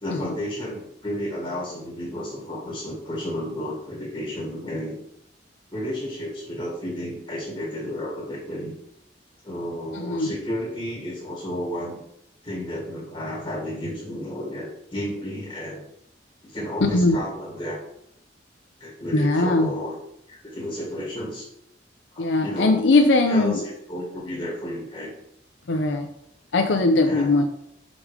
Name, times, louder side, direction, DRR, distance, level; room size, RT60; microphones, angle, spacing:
voice 1, 0.0-5.0 5.7-8.7 9.4-12.0 12.4-15.9 16.4-17.8 18.8-19.9 20.3-21.5 22.1-22.8 23.3-25.1 27.0-27.3, equal, 25° left, -4 dB, 1.8 m, -32 dB
voice 2, 10.0-10.3 16.9-17.2 19.1-19.7 22.2-23.6 25.7-26.1 26.5-27.4, left 2 dB, 85° left, 4 dB, 0.6 m, -20 dB
5.3 x 5.1 x 4.8 m, 0.75 s
head